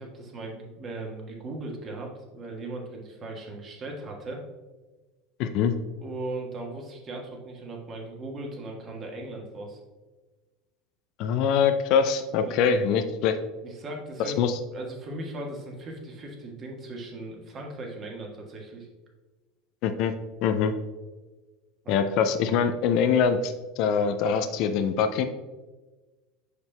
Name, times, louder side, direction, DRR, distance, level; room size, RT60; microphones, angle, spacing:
voice 1, 0.0-4.4 6.0-9.8 12.3-13.0 13.6-14.5 14.7-18.9 21.8-22.1, right 2 dB, 35° right, 0 dB, 1.5 m, -38 dB
voice 2, 5.4-5.7 11.2-13.3 14.4-14.6 19.8-20.1 20.4-20.7 21.9-25.3, left 6 dB, 50° left, 9 dB, 0.4 m, -24 dB
6.7 x 6.5 x 2.3 m, 1.2 s
figure-of-eight pair, 75°, 0 cm